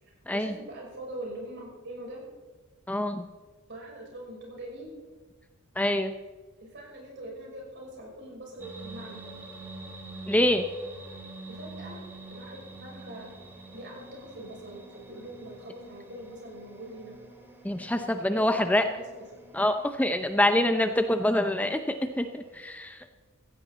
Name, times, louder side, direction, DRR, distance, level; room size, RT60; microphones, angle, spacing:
voice 1, 0.0-2.2 3.7-4.9 6.6-9.2 11.5-12.0 12.3-13.3 13.7-17.2 18.0-19.0 21.3-21.5, right 1 dB, 55° right, -2 dB, 6.0 m, -43 dB
voice 2, 2.9-3.3 5.8-6.1 10.3-10.6 17.6-18.8 19.5-21.8 22.2-23.1, left 1 dB, 5° left, 7 dB, 0.6 m, -25 dB
sound 1, 8.6-22.6, right 2 dB, 10° right, 1.8 m, -47 dB
16.5 x 15.5 x 4.1 m, 1.3 s
head